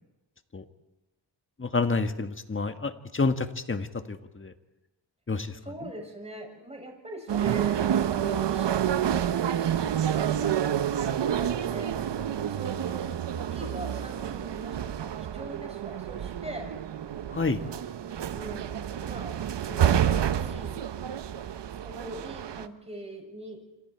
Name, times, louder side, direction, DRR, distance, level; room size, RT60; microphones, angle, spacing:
voice 1, 1.6-4.5 5.3-5.9 17.3-17.6, left 3 dB, 30° left, 8 dB, 1.6 m, -29 dB
voice 2, 5.6-12.0 12.5-13.1 13.4-16.7 17.7-20.8 21.8-23.6, right 1 dB, 15° right, 2 dB, 7.0 m, -42 dB
sound 1, 7.3-22.7, right 9 dB, 75° right, 1.0 m, -29 dB
27.5 x 26.5 x 4.6 m, 1.0 s
cardioid pair, 85°, 43 cm